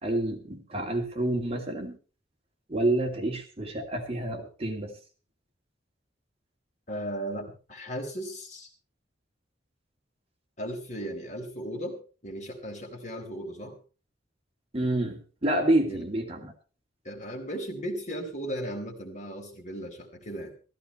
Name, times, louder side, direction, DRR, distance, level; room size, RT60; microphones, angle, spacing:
voice 1, 0.0-2.0 2.7-5.0 14.7-16.5, right 1 dB, 35° right, 3 dB, 2.4 m, -28 dB
voice 2, 6.9-8.7 10.6-13.8 15.9-16.0 17.0-20.5, equal, 40° left, 2 dB, 4.0 m, -36 dB
15.0 x 15.0 x 4.4 m, 0.36 s
head